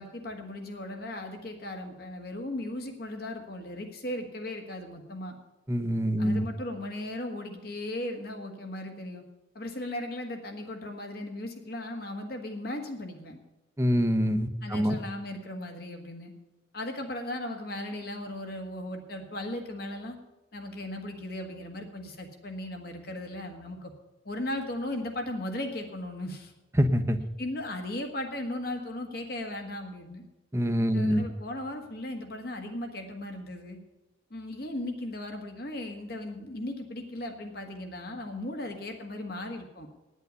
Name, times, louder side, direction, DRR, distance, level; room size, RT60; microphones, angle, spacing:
voice 1, 0.0-5.4 6.2-9.2 9.5-13.4 14.6-16.3 16.7-20.2 20.5-23.9 24.2-26.5 27.4-30.2 30.9-33.8 34.3-39.9, left 1 dB, 55° left, 4 dB, 1.6 m, -37 dB
voice 2, 5.7-6.4 13.8-14.9 26.8-27.2 30.5-31.2, equal, 15° right, 7 dB, 0.7 m, -25 dB
9.6 x 8.2 x 9.3 m, 1.0 s
head